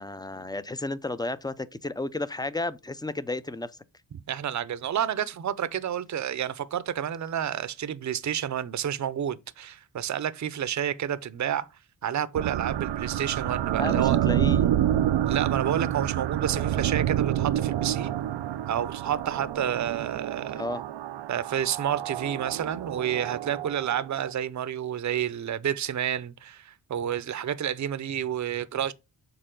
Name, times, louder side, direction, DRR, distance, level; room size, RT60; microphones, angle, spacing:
voice 1, 0.0-3.7 13.7-14.7 20.5-20.8, left 2 dB, 10° left, 0.5 m, -32 dB
voice 2, 4.3-11.7 12.0-14.3 15.3-18.1 18.7-20.6 21.3-28.9, right 9 dB, 45° right, 0.6 m, -30 dB
sound 1, 12.4-24.3, right 11 dB, 85° right, 0.6 m, -28 dB
6.7 x 4.2 x 3.7 m
cardioid pair, 80°, 42 cm